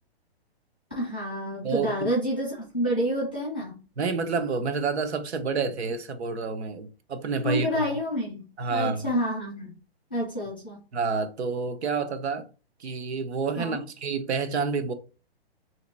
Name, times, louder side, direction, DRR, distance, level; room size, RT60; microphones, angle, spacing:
voice 1, 1.0-3.8 7.4-8.4 8.7-9.8 10.1-10.8 13.6-13.8, equal, 10° left, 0.4 m, -28 dB
voice 2, 1.6-2.1 4.0-7.8 8.6-9.1 10.9-12.5 12.8-14.9, right 4 dB, 85° right, 0.8 m, -29 dB
3.0 x 2.9 x 3.9 m
hypercardioid pair, 180°, 32 cm